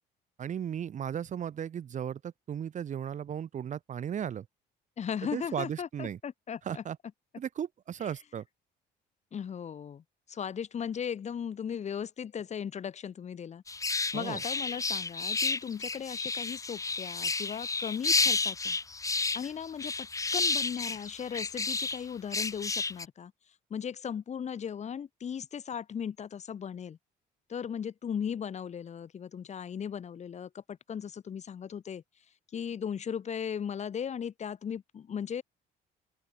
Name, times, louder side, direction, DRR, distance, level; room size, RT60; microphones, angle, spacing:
voice 1, 0.4-4.5 5.3-6.2 6.6-7.0 7.4-8.4 14.1-14.4, right 9 dB, 45° right, 1.8 m, -36 dB
voice 2, 5.0-6.8 9.3-13.6 14.1-18.8 19.3-20.1 20.3-23.3 23.7-27.0 27.5-32.0 32.5-35.4, left 8 dB, 40° left, 2.9 m, -37 dB
sound 1, 13.7-22.0 22.3-23.1, left 4 dB, 20° left, 1.2 m, -31 dB
open air
cardioid pair, 110°, 17 cm